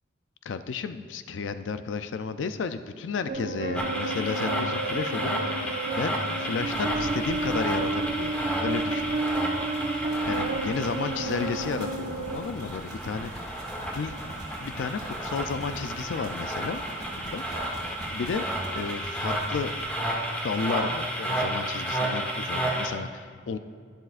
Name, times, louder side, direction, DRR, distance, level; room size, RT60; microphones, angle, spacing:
voice 1, 0.4-8.3 8.6-9.1 10.3-14.2 14.6-16.8 17.2-17.4 17.8-18.5 18.7-19.7 20.4-23.6, left 5 dB, 85° left, 10 dB, 0.4 m, -33 dB
sound 1, 3.3-12.4, right 2 dB, 50° right, 0.6 m, -31 dB
sound 2, 3.7-22.9, right 1 dB, 5° left, 1.2 m, -32 dB
sound 3, 6.2-19.9, right 1 dB, 25° right, 2.1 m, -43 dB
11.5 x 10.5 x 2.4 m, 2.1 s
head